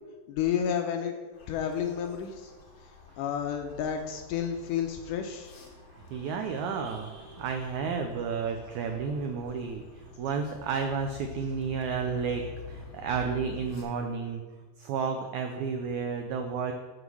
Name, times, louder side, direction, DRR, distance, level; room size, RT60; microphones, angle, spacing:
voice 1, 0.3-2.5 3.2-5.5, left 8 dB, 80° left, 4 dB, 2.0 m, -31 dB
sound 1, 1.3-13.8, left 6 dB, 65° left, 2.9 m, -48 dB
voice 2, 6.1-14.4 14.8-16.7, right 5 dB, 85° right, 5 dB, 1.7 m, -32 dB
7.0 x 6.4 x 6.2 m, 1.4 s
omnidirectional pair, 4.2 m